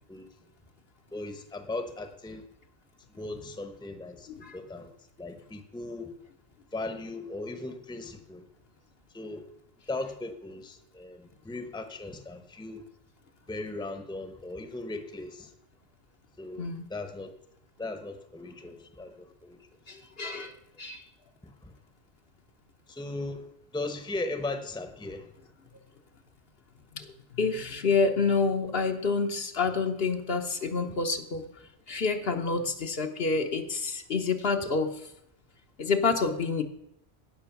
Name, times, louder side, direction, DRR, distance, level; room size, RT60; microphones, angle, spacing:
voice 1, 1.1-2.5 3.1-4.9 5.2-6.1 6.7-8.4 9.1-9.4 9.9-12.8 13.5-15.5 16.4-17.3 17.8-19.8 21.4-21.7 22.9-25.3 30.9-31.0 34.6-34.7, left 2 dB, 5° left, 8 dB, 0.9 m, -38 dB
voice 2, 19.9-21.0 26.9-31.4 31.9-34.9 35.8-36.6, left 4 dB, 60° left, 5 dB, 1.2 m, -28 dB
16.5 x 6.1 x 5.9 m, 0.78 s
omnidirectional pair, 1.2 m